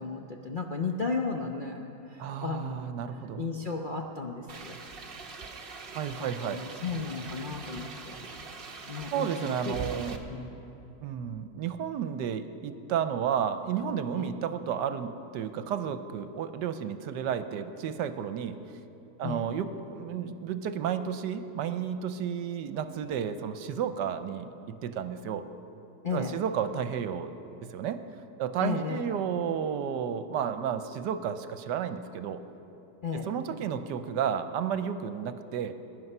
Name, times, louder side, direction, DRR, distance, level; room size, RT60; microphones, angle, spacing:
voice 1, 0.0-2.9 3.4-4.8 6.2-8.2 8.9-10.0 10.3-10.5 14.1-14.3 19.2-19.5 26.0-26.4 28.6-29.1 33.0-33.3, left 4 dB, 50° left, 1 dB, 0.6 m, -34 dB
voice 2, 2.2-3.5 5.9-6.6 9.1-10.2 11.0-18.6 19.2-25.5 26.1-27.3 27.7-28.0 28.4-32.4 33.3-35.7, right 8 dB, 80° right, 10 dB, 1.3 m, -32 dB
sound 1, 4.5-10.2, right 4 dB, 40° right, 0.9 m, -42 dB
21.5 x 11.0 x 5.5 m, 2.9 s
omnidirectional pair, 1.9 m